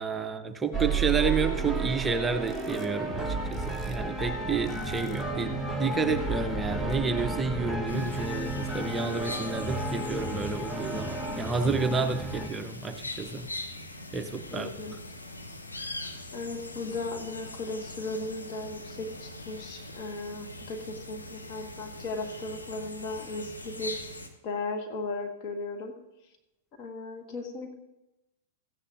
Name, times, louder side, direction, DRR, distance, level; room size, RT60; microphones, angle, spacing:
voice 1, 0.0-13.5 14.1-15.0, right 4 dB, 15° right, 7 dB, 0.7 m, -30 dB
sound 1, 0.7-12.5, right 3 dB, 5° left, 1.3 m, -32 dB
sound 2, 7.9-24.3, left 2 dB, 90° left, 1.2 m, -42 dB
voice 2, 14.5-14.9 16.3-24.0 24.4-25.9 26.8-27.7, left 3 dB, 40° left, 2 dB, 1.5 m, -36 dB
14.5 x 9.8 x 2.6 m, 0.92 s
figure-of-eight pair, 100°, 0 cm